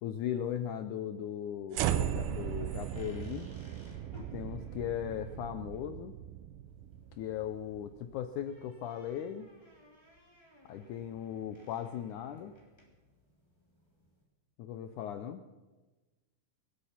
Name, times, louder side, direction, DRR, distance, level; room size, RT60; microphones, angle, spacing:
voice 1, 0.0-3.5 4.2-6.2 7.2-9.5 10.7-12.5 14.6-15.4, left 9 dB, 85° left, 9 dB, 1.7 m, -38 dB
sound 1, 1.7-8.0, right 10 dB, 90° right, 2.6 m, -37 dB
sound 2, 1.8-14.2, equal, 10° left, 2.6 m, -61 dB
25.5 x 8.6 x 5.8 m, 1.2 s
omnidirectional pair, 4.3 m